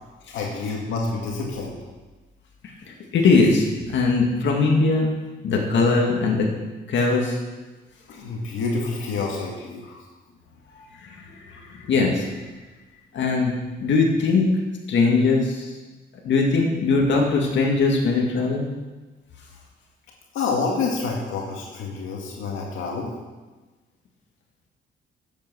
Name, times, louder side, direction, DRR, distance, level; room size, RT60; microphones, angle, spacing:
voice 1, 0.3-1.7 8.1-10.0 11.5-11.6 20.3-23.1, left 4 dB, 85° left, -2 dB, 2.1 m, -28 dB
voice 2, 3.1-5.1 5.4-6.5 6.9-7.4 10.7-12.4 13.1-13.5 13.8-14.5 14.9-15.7 16.2-18.7, left 3 dB, 65° left, 0 dB, 2.1 m, -21 dB
10.5 x 7.9 x 6.3 m, 1.2 s
cardioid pair, 90°, 20 cm